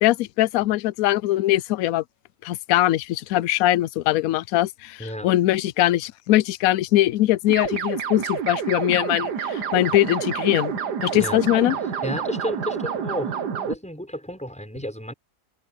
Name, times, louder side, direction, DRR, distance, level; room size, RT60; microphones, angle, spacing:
voice 1, 0.0-2.0 2.4-10.7 11.0-11.8, left 15 dB, 70° left, 0.9 m, -21 dB
voice 2, 5.0-5.3 11.1-11.4 12.0-13.3 13.7-15.1, equal, 5° left, 6.4 m, -32 dB
sound 1, 7.5-13.8, right 7 dB, 85° right, 2.0 m, -28 dB
omnidirectional pair, 1.7 m